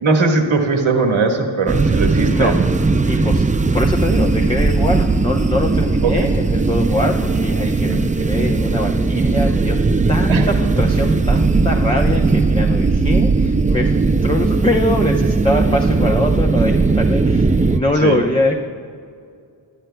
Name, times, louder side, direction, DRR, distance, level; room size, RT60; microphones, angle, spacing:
voice 1, 0.0-2.5 6.0-6.3 7.8-8.0 10.3-10.5 17.9-18.2, right 3 dB, 70° right, 3 dB, 1.6 m, -19 dB
sound 1, 1.7-17.8, right 3 dB, 15° right, 0.5 m, -17 dB
voice 2, 3.1-9.8 10.1-18.6, left 1 dB, 10° left, 0 dB, 0.7 m, -23 dB
22.0 x 11.5 x 2.3 m, 2.3 s
cardioid pair, 65°, 50 cm